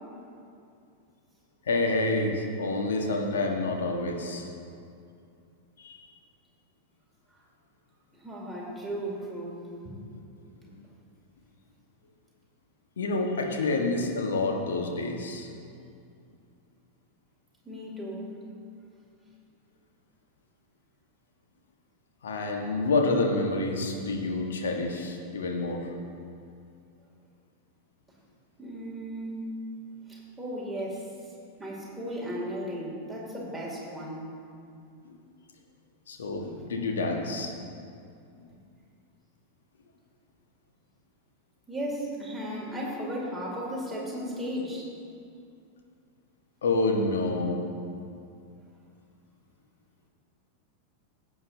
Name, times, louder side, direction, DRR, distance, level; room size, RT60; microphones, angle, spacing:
voice 1, 1.7-4.5 5.8-6.0 13.0-15.5 22.2-25.8 35.0-35.1 36.1-37.5 46.6-47.7, left 2 dB, 65° left, 2 dB, 1.3 m, -28 dB
voice 2, 8.2-9.9 10.6-10.7 17.7-18.3 28.6-29.4 30.1-31.0 31.6-34.3 41.7-44.9, equal, 5° right, -5 dB, 2.5 m, -35 dB
16.5 x 7.8 x 2.7 m, 2.5 s
figure-of-eight pair, 90°, 0 cm